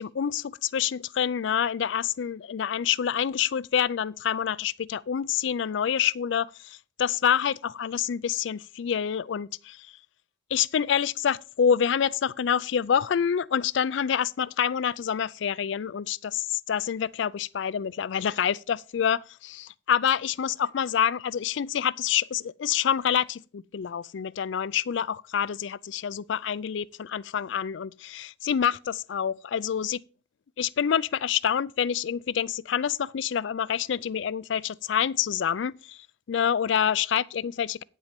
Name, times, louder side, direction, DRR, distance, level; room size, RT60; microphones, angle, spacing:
voice 1, 0.0-9.9 10.5-30.0 30.6-37.8, left 8 dB, 65° left, 0.4 m, -27 dB
9.3 x 7.3 x 5.1 m
head